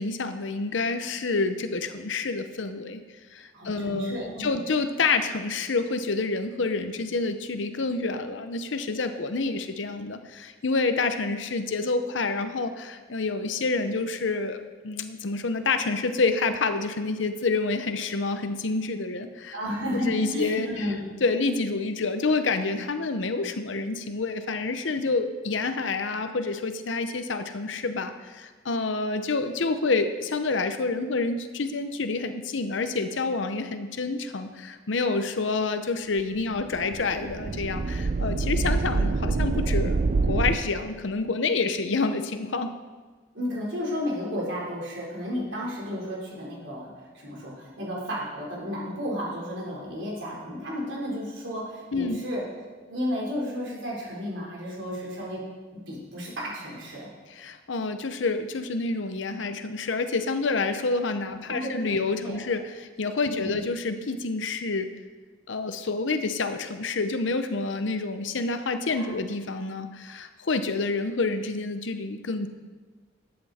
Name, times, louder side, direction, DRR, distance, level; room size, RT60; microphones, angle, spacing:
voice 1, 0.0-3.0 3.3-14.6 14.8-19.5 19.9-20.9 21.2-40.0 40.3-42.7 51.9-52.2 57.3-64.9 65.5-72.5, left 3 dB, 75° left, 8 dB, 0.8 m, -28 dB
voice 2, 3.5-4.5 19.5-21.0 43.3-46.9 47.1-52.4 52.9-55.4 55.9-57.1 61.3-62.4 63.3-63.6 68.9-69.1, equal, 70° right, -4 dB, 4.1 m, -33 dB
sound 1, 36.6-40.6, right 3 dB, 45° right, 0.5 m, -26 dB
13.5 x 8.6 x 4.3 m, 1.4 s
head